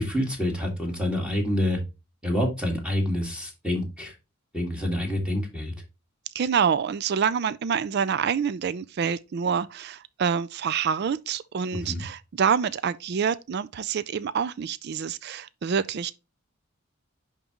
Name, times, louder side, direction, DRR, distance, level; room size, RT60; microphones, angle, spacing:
voice 1, 0.0-1.8 2.2-4.1 4.5-5.7 11.7-12.0, left 1 dB, 5° right, 1.8 m, -27 dB
voice 2, 6.3-16.1, right 7 dB, 50° right, 0.4 m, -27 dB
10.5 x 3.7 x 2.9 m
head